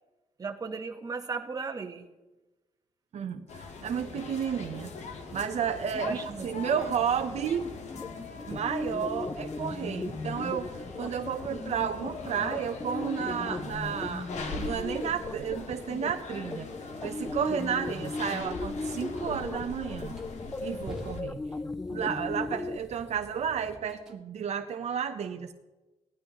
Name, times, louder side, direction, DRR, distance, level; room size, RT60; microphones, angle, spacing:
voice 1, 0.4-2.0 6.0-6.6, right 4 dB, 30° right, 3 dB, 1.1 m, -36 dB
voice 2, 3.1-4.9 5.3-7.7 8.5-14.3 14.6-16.7 17.0-20.2 20.6-21.4 21.9-25.5, right 8 dB, 65° right, 7 dB, 0.7 m, -32 dB
sound 1, 3.5-21.2, left 3 dB, 75° left, 1.6 m, -41 dB
sound 2, 7.7-22.8, left 3 dB, 15° left, 0.4 m, -37 dB
sound 3, 19.1-19.3 19.9-24.2, equal, 5° right, 1.6 m, -48 dB
17.5 x 12.0 x 3.0 m, 1.1 s
wide cardioid pair, 135°, 12 cm